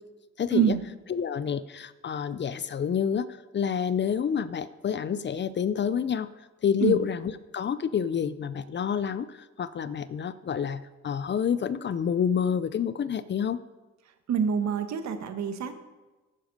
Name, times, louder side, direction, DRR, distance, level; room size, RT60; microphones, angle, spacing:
voice 1, 0.4-0.7 1.1-3.3 3.5-6.3 6.6-13.6, left 7 dB, 40° left, 16 dB, 0.5 m, -28 dB
voice 2, 14.3-15.7, right 7 dB, 65° right, 9 dB, 1.2 m, -26 dB
10.0 x 9.4 x 5.3 m, 1.2 s
cardioid pair, 90°, 30 cm